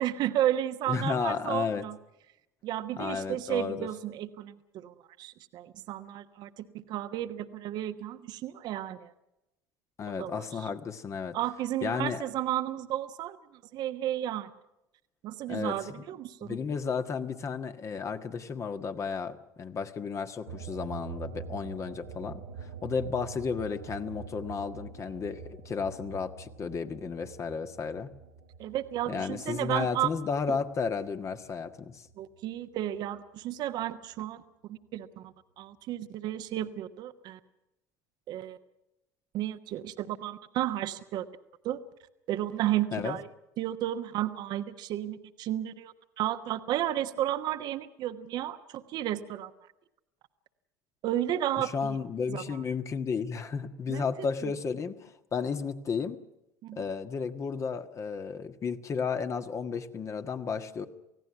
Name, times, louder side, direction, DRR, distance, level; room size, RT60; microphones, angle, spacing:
voice 1, 0.0-2.0 2.6-9.1 10.2-10.4 11.3-13.4 13.7-14.5 15.2-16.6 28.6-30.1 30.5-30.6 32.2-34.4 34.7-37.4 38.3-38.6 39.3-41.2 41.6-41.8 42.3-43.3 43.6-49.5 51.0-52.0 52.3-52.6 53.9-54.1 54.4-54.5 56.6-56.8, right 12 dB, 50° right, 10 dB, 1.2 m, -33 dB
voice 2, 0.9-1.8 3.0-3.9 10.0-11.4 11.8-12.3 15.5-15.7 16.4-28.1 29.1-32.1 42.9-43.2 51.6-56.2 56.7-60.9, left 5 dB, 35° left, 8 dB, 1.6 m, -33 dB
sound 1, 20.5-31.4 31.7-33.2, right 6 dB, 70° right, 1.6 m, -45 dB
29.0 x 17.0 x 6.0 m, 0.89 s
figure-of-eight pair, 65°, 9 cm